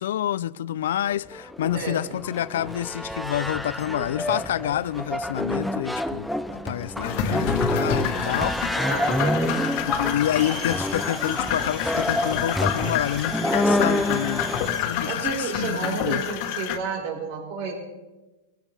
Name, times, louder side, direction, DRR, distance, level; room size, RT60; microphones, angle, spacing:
voice 1, 0.0-8.9 9.7-14.5 14.8-16.2, left 11 dB, 75° left, 0.4 m, -28 dB
sound 1, 1.1-14.6, left 1 dB, ahead, 0.5 m, -28 dB
voice 2, 1.7-2.2 8.8-9.6 15.0-17.7, right 5 dB, 55° right, 4.7 m, -31 dB
sound 2, 7.0-16.8, left 9 dB, 45° left, 1.5 m, -28 dB
Domestic sounds home sounds, 10.2-15.3, right 3 dB, 25° right, 4.1 m, -40 dB
22.5 x 15.5 x 3.5 m
supercardioid pair, 145°, 0 cm